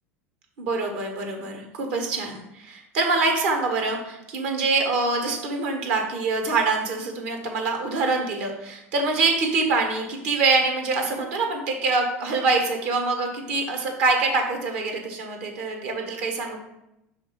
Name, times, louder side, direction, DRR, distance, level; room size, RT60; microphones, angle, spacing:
voice 1, 0.6-16.6, right 3 dB, 65° right, 3 dB, 1.5 m, -25 dB
5.0 x 3.5 x 5.5 m, 0.85 s
hypercardioid pair, 80°, 8 cm